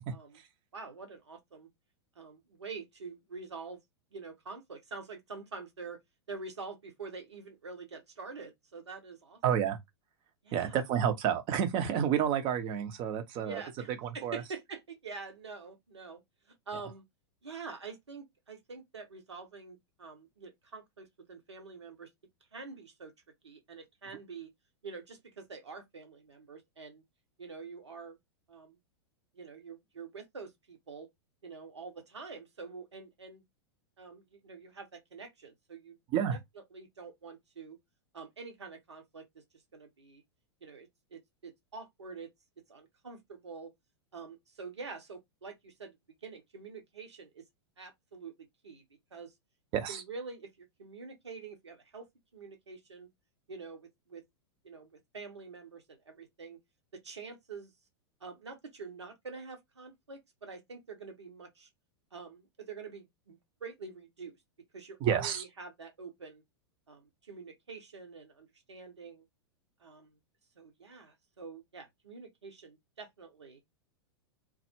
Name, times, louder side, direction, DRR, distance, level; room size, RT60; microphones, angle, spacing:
voice 1, 0.1-0.4 0.7-1.7 2.2-3.8 4.1-6.0 6.3-9.4 10.4-10.8 13.3-17.0 17.4-22.1 22.5-23.1 23.4-24.5 24.8-27.0 27.4-28.2 28.5-28.8 29.3-31.1 31.4-33.5 34.0-36.0 36.3-36.4 36.7-37.8 38.1-39.4 39.7-40.2 40.6-43.7 44.1-47.5 47.8-48.3 48.6-48.8 49.1-49.3 49.9-52.1 52.3-53.1 53.5-54.2 54.6-54.9 55.1-56.6 56.9-57.7 58.2-61.7 62.1-66.4 66.9-69.3 69.8-70.2 70.6-73.6, right 4 dB, 80° right, 0.9 m, -46 dB
voice 2, 9.4-9.8 10.5-13.6 14.0-14.4 36.1-36.4 49.7-50.0 65.0-65.4, right 9 dB, 35° right, 0.6 m, -29 dB
2.2 x 2.0 x 2.9 m
figure-of-eight pair, 95°, 14 cm